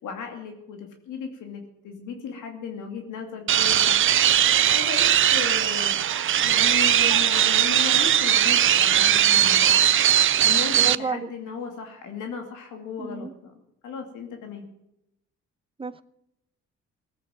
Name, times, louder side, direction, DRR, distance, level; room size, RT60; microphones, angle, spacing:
voice 1, 0.0-4.1 4.7-6.0 6.4-9.7 10.4-14.6, left 6 dB, 85° left, 4 dB, 2.5 m, -36 dB
sound 1, 3.5-10.9, right 10 dB, 45° right, 0.5 m, -19 dB
sound 2, 5.8-7.1 9.2-10.8 11.5-11.6, right 10 dB, 60° right, 1.7 m, -46 dB
voice 2, 10.7-11.3 13.0-13.3 15.8-16.0, right 4 dB, 20° right, 13 dB, 0.9 m, -31 dB
18.0 x 8.8 x 7.7 m, 0.81 s
cardioid pair, 90°, 30 cm